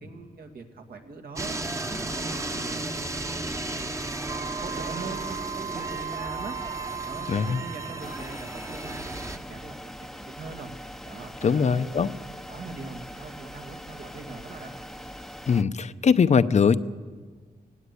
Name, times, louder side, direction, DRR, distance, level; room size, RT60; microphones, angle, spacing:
voice 1, 0.0-2.8 3.2-4.1 4.6-10.7 11.0-12.0 12.5-14.7, right 4 dB, 80° right, 4 dB, 2.3 m, -42 dB
sound 1, 1.4-9.4, right 2 dB, 20° right, 1.0 m, -34 dB
Wind instrument woodwind instrument, 4.3-8.4, right 7 dB, 45° right, 0.6 m, -37 dB
voice 2, 7.3-7.6 11.4-12.1 15.5-16.8, left 6 dB, 50° left, 13 dB, 0.7 m, -21 dB
sound 2, 8.0-15.6, equal, ahead, 0.7 m, -42 dB
17.0 x 16.5 x 9.9 m, 1.5 s
wide cardioid pair, 125°, 15 cm